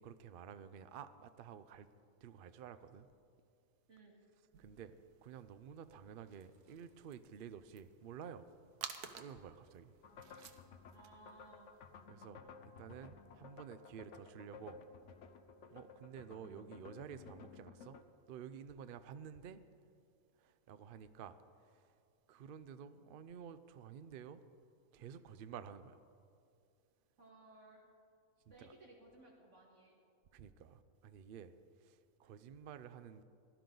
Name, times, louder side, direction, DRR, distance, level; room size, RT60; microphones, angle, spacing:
voice 1, 0.0-1.9 2.2-3.1 4.6-4.9 5.2-8.4 9.2-9.9 12.1-14.8 15.7-18.0 18.3-19.6 20.4-21.4 21.6-22.0 22.3-24.4 24.9-26.0 28.5-28.7 30.3-31.5 31.8-33.2, right 8 dB, 70° right, 12 dB, 0.5 m, -51 dB
sound 1, 4.5-12.1, right 7 dB, 85° right, 1.4 m, -55 dB
sound 2, 10.0-18.0, left 6 dB, 60° left, 0.9 m, -56 dB
voice 2, 10.9-11.7 27.2-27.8 28.5-30.0, right 2 dB, 50° right, -1 dB, 2.1 m, -60 dB
17.0 x 12.0 x 3.9 m, 2.4 s
omnidirectional pair, 1.6 m